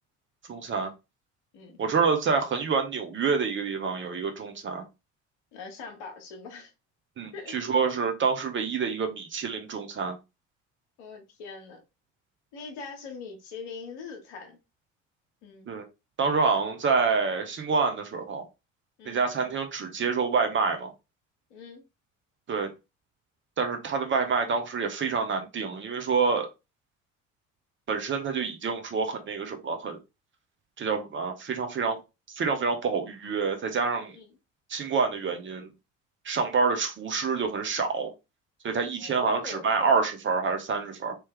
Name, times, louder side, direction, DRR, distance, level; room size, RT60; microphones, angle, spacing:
voice 1, 0.5-0.9 1.8-4.8 7.2-10.2 15.7-15.8 16.2-18.5 19.0-20.9 22.5-22.7 23.6-26.5 27.9-30.0 30.8-32.0 32.3-34.1 34.7-35.7 36.2-38.1 38.6-41.2, right 5 dB, 30° right, 0.9 m, -27 dB
voice 2, 5.5-6.7 7.3-7.9 11.0-11.8 12.5-14.6 15.4-15.7 19.0-19.2 21.5-21.8 34.1-34.3 39.0-39.7, left 5 dB, 65° left, 1.2 m, -42 dB
3.3 x 3.0 x 3.2 m
figure-of-eight pair, 60°, 38 cm